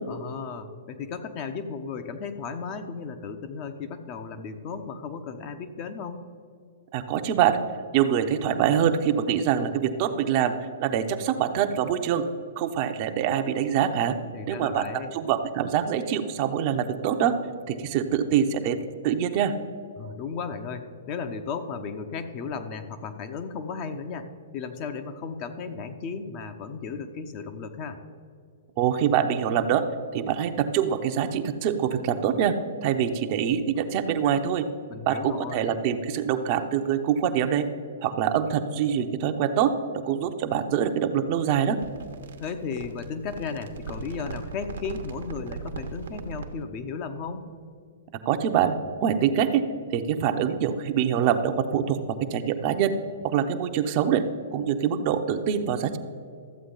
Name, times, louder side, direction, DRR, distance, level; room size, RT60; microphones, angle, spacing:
voice 1, 0.1-6.2 14.3-15.1 20.0-28.0 34.9-35.6 42.4-47.5, left 5 dB, 40° left, 7 dB, 0.8 m, -35 dB
voice 2, 6.9-7.6 7.9-10.5 10.8-12.2 12.6-14.2 14.5-14.9 15.1-17.3 17.7-18.8 19.0-19.5 28.8-29.8 30.1-32.5 32.8-34.7 35.1-37.7 38.0-39.7 40.0-41.8 48.3-48.7 49.0-49.6 49.9-52.0 52.3-52.9 53.2-54.2 54.5-56.0, right 9 dB, 45° right, 7 dB, 0.7 m, -24 dB
sound 1, 41.5-46.6, right 5 dB, 70° right, 1.0 m, -39 dB
13.5 x 7.9 x 3.9 m, 2.3 s
hypercardioid pair, 120°, 0 cm